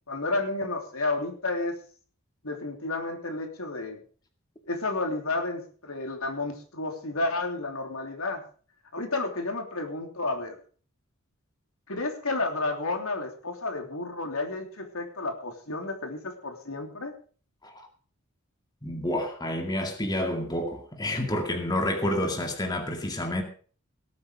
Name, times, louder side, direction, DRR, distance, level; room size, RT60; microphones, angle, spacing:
voice 1, 0.1-1.8 2.4-4.0 4.7-8.4 8.9-10.6 11.9-17.1, left 2 dB, 75° left, 3.1 m, -31 dB
voice 2, 18.8-23.4, left 1 dB, 20° left, 2.2 m, -29 dB
18.5 x 8.6 x 5.0 m
head